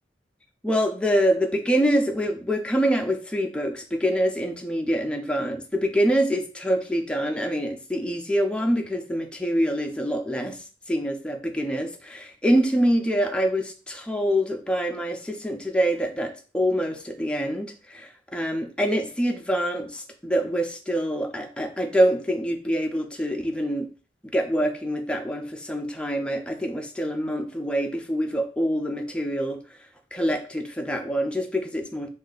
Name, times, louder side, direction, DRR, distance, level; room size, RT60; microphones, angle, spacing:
voice 1, 0.6-10.6 10.9-23.9 24.3-29.6 30.1-32.1, equal, 5° left, 4 dB, 0.4 m, -25 dB
3.1 x 2.6 x 3.9 m, 0.36 s
head